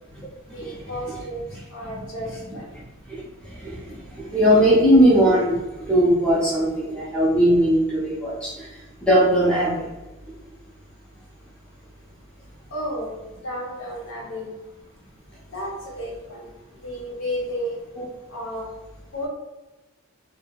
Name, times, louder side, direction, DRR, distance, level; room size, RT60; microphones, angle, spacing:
voice 1, 0.5-1.4 1.7-2.8 12.7-13.1 13.4-14.5 15.5-16.5 16.8-17.8 18.3-18.7 19.1-19.3, equal, 70° left, -4 dB, 0.9 m, -32 dB
voice 2, 4.3-5.5 5.8-8.7 9.0-9.7, equal, 5° left, -7 dB, 0.5 m, -18 dB
2.2 x 2.1 x 3.4 m, 1.1 s
head